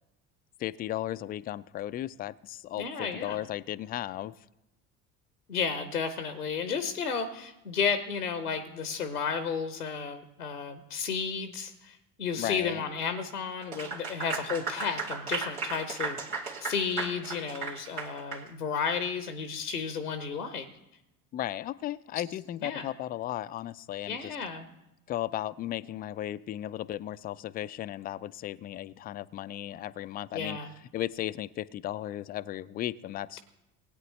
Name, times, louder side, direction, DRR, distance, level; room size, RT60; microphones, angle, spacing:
voice 1, 0.6-4.3 12.4-12.8 21.3-24.4 25.1-30.6 30.9-33.4, left 13 dB, 25° left, 18 dB, 0.3 m, -35 dB
voice 2, 2.8-3.4 5.5-16.2 16.6-20.7 22.6-22.8 24.1-24.7 30.3-30.7, left 6 dB, 85° left, 10 dB, 0.9 m, -32 dB
Clapping / Applause, 13.6-18.5, right 4 dB, 85° right, 2.5 m, -35 dB
19.5 x 9.0 x 3.1 m, 0.92 s
figure-of-eight pair, 55°, 44 cm